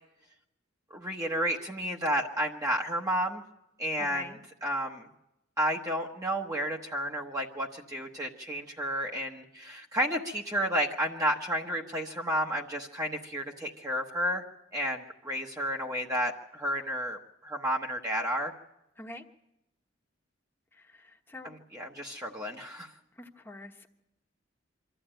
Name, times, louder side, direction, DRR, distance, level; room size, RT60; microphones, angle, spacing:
voice 1, 0.9-3.4 3.8-5.1 5.6-14.4 14.7-18.5 21.4-22.9, equal, 15° right, 0 dB, 1.1 m, -31 dB
voice 2, 4.0-4.4 19.0-19.2 20.8-21.5 23.2-23.9, left 2 dB, 10° left, 2 dB, 1.2 m, -44 dB
24.5 x 13.5 x 9.0 m, 0.89 s
head